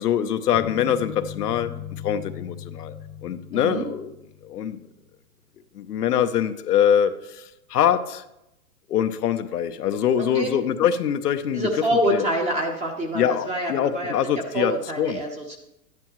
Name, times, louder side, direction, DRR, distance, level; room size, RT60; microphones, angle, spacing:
voice 1, 0.0-3.0 3.2-4.1 4.4-4.8 5.7-8.2 8.9-11.8 12.1-12.3 13.1-15.2, left 9 dB, 90° left, 8 dB, 0.8 m, -24 dB
sound 1, 0.5-4.7, left 11 dB, 40° left, 0.6 m, -38 dB
voice 2, 3.5-3.9 10.2-10.5 11.5-14.1 14.5-15.6, equal, 15° right, 2 dB, 0.9 m, -26 dB
11.5 x 9.5 x 3.0 m, 0.87 s
hypercardioid pair, 130°, 45 cm